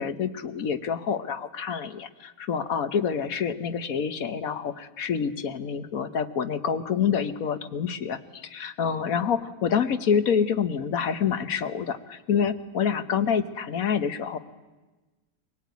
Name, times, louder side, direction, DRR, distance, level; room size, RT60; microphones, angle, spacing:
voice 1, 0.0-8.2 8.5-14.4, left 7 dB, 70° left, 11 dB, 1.5 m, -27 dB
24.0 x 18.0 x 9.3 m, 1.2 s
omnidirectional pair, 1.6 m